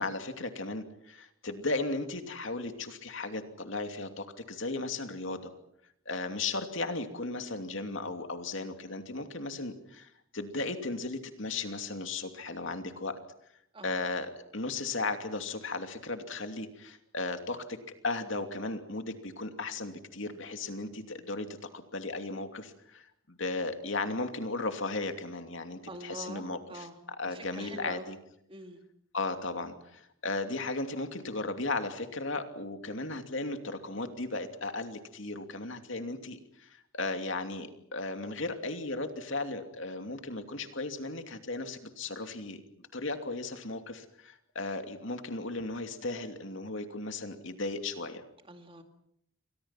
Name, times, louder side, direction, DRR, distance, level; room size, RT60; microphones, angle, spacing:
voice 1, 0.0-5.5 6.1-13.2 13.8-17.8 18.0-21.5 21.7-26.9 27.2-28.2 29.1-42.6 42.9-48.2, left 3 dB, 60° left, 6 dB, 2.8 m, -36 dB
voice 2, 25.9-27.0 27.3-28.1 28.5-28.8 48.5-48.8, right 1 dB, 25° right, 6 dB, 2.2 m, -44 dB
29.5 x 24.5 x 5.9 m, 0.74 s
head